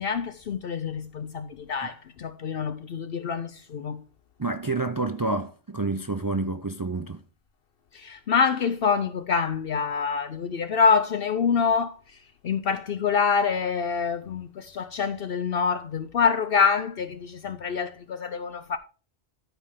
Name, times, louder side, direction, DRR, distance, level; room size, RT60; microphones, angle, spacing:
voice 1, 0.0-4.0 7.9-12.0 12.4-18.8, left 6 dB, 60° left, 0.9 m, -26 dB
voice 2, 4.4-7.2, right 3 dB, 30° right, 0.4 m, -28 dB
13.0 x 5.4 x 3.5 m
omnidirectional pair, 1.1 m